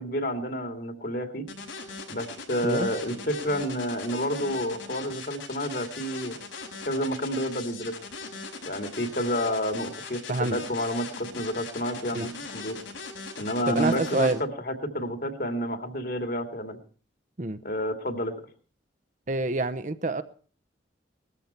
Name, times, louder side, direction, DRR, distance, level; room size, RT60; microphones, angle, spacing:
voice 1, 0.0-1.5 2.1-6.3 6.9-7.9 8.6-12.8 13.4-16.8 17.6-18.3, equal, 50° left, 7 dB, 2.5 m, -30 dB
sound 1, 1.5-14.3, left 4 dB, 85° left, 6.1 m, -39 dB
voice 2, 13.7-14.4 17.4-17.6 19.3-20.2, right 2 dB, 40° right, 11 dB, 0.8 m, -27 dB
19.5 x 14.0 x 4.4 m, 0.40 s
head